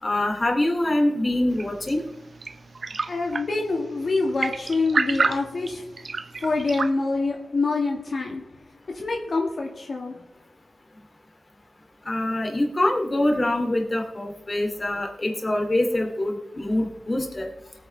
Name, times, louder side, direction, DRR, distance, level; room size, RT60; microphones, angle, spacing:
voice 1, 0.0-2.0 12.1-17.5, left 1 dB, 35° left, 2 dB, 2.4 m, -24 dB
sound 1, 1.5-6.9, right 4 dB, 60° right, 0.6 m, -30 dB
voice 2, 3.1-5.9 6.4-8.4 8.9-10.2, left 3 dB, 60° left, 0 dB, 1.8 m, -26 dB
19.0 x 9.2 x 3.3 m, 0.90 s
cardioid pair, 70°, 0 cm